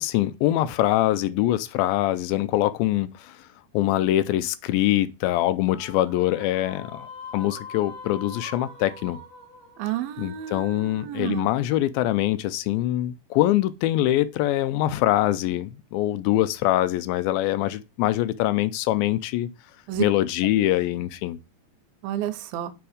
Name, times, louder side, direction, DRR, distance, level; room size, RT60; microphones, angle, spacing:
voice 1, 0.0-3.4 3.7-9.2 10.2-19.5 20.0-21.4, left 14 dB, 85° left, 2.3 m, -24 dB
sound 1, 5.7-11.1, left 3 dB, 65° left, 1.7 m, -43 dB
voice 2, 9.8-11.5 19.9-20.0 22.0-22.7, right 12 dB, 85° right, 2.4 m, -30 dB
7.0 x 3.6 x 4.9 m
omnidirectional pair, 4.3 m